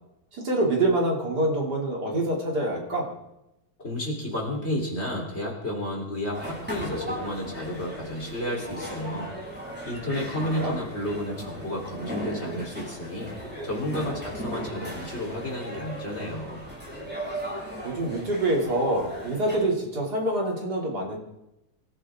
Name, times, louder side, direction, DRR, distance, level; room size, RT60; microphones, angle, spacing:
voice 1, 0.3-3.1 10.4-10.8 17.8-21.2, right 1 dB, 50° right, -1 dB, 3.5 m, -26 dB
voice 2, 3.8-9.3 9.9-13.3 13.6-16.6, left 1 dB, 30° left, -1 dB, 4.1 m, -32 dB
sound 1, 6.3-19.6, equal, 5° right, 6.9 m, -37 dB
25.0 x 14.0 x 3.7 m, 0.90 s
omnidirectional pair, 2.3 m